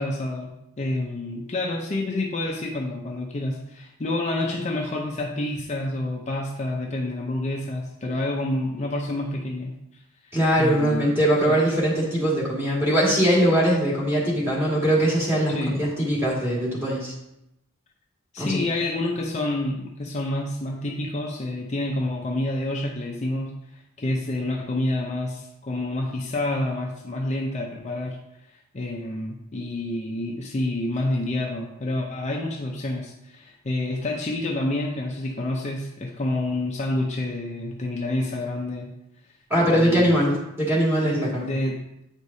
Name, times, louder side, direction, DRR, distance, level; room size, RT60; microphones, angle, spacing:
voice 1, 0.0-11.1 11.5-11.6 15.5-15.8 18.3-28.2 28.5-38.9 39.7-40.2 41.4-41.8, left 1 dB, 35° left, 0 dB, 0.5 m, -28 dB
voice 2, 10.3-17.1 18.4-18.6 39.5-41.6, equal, 10° right, -7 dB, 2.0 m, -21 dB
8.9 x 4.8 x 2.7 m, 0.86 s
head